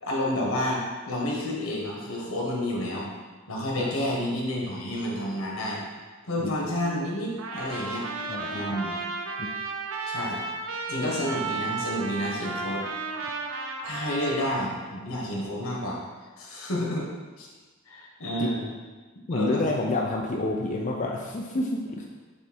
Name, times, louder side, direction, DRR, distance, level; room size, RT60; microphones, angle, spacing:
voice 1, 0.0-3.1 3.5-5.8 6.3-8.0 8.5-8.9 10.1-10.4 10.9-12.8 13.8-16.0 16.4-17.1 17.4-17.5 17.9-18.7 19.3-19.6, left 1 dB, 85° left, -3 dB, 1.6 m, -30 dB
Trumpet, 7.4-14.8, right 3 dB, 80° right, 0.7 m, -34 dB
voice 2, 8.3-8.6 9.4-9.5 18.4-18.5 19.3-22.1, left 2 dB, 35° left, 0 dB, 0.5 m, -28 dB
7.2 x 3.4 x 4.3 m, 1.3 s
head